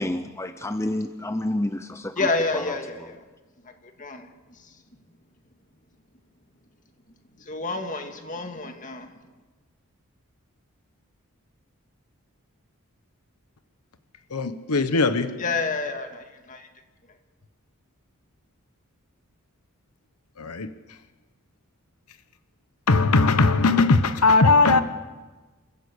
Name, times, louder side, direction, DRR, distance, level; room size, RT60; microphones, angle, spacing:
voice 1, 0.0-2.3 2.5-3.1, left 1 dB, 10° left, 0.7 m, -29 dB
voice 2, 2.2-3.2 4.0-4.3 7.5-9.1 15.4-16.6, left 3 dB, 35° left, 2.1 m, -28 dB
voice 3, 14.3-15.4 20.4-20.7 22.9-24.8, left 3 dB, 90° left, 1.1 m, -19 dB
28.0 x 15.0 x 8.4 m
head